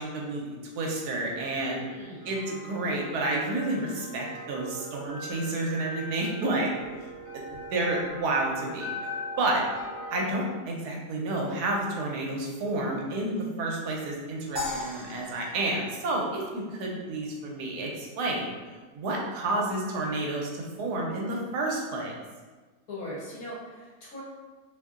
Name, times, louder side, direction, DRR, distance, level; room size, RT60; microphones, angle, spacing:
voice 1, 0.0-1.8 2.2-6.7 7.3-8.9 9.4-9.6 10.1-18.5 18.9-22.1, right 2 dB, 80° right, -1 dB, 1.1 m, -30 dB
voice 2, 1.7-2.3 22.9-24.2, left 1 dB, 65° left, -6 dB, 1.2 m, -40 dB
sound 1, 1.8-10.2, left 1 dB, 60° right, 1.2 m, -40 dB
sound 2, 14.6-16.9, left 2 dB, 15° right, 0.9 m, -37 dB
2.9 x 2.6 x 2.4 m, 1.3 s
omnidirectional pair, 1.7 m